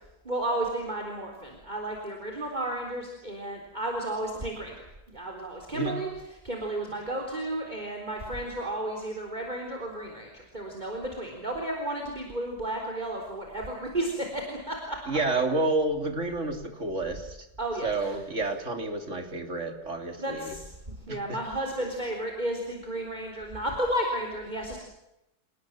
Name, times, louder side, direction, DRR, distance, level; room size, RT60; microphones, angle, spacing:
voice 1, 0.2-6.1 6.4-15.0 17.6-18.1 20.2-20.6 21.1-24.8, right 1 dB, 25° right, 1 dB, 4.0 m, -33 dB
voice 2, 15.1-17.4 17.8-20.5 21.1-21.2, right 2 dB, 40° right, 5 dB, 3.6 m, -29 dB
29.5 x 19.0 x 7.5 m, 0.89 s
omnidirectional pair, 1.9 m